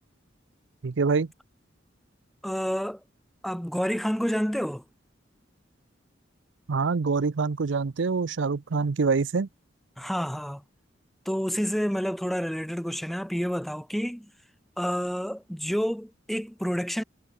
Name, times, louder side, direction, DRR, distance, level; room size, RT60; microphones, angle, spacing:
voice 1, 0.8-1.3 6.7-9.5, right 4 dB, 70° right, 0.6 m, -25 dB
voice 2, 2.4-3.0 3.4-4.8 10.0-10.6 11.3-14.3 14.8-17.0, equal, ahead, 0.5 m, -29 dB
head